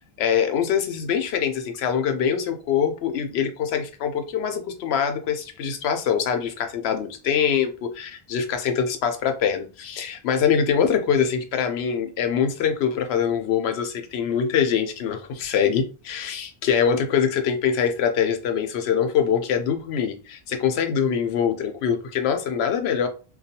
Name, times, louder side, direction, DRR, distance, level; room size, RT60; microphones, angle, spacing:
voice 1, 0.2-23.1, left 7 dB, 85° left, 0.8 m, -24 dB
2.3 x 2.2 x 2.7 m
omnidirectional pair, 1.1 m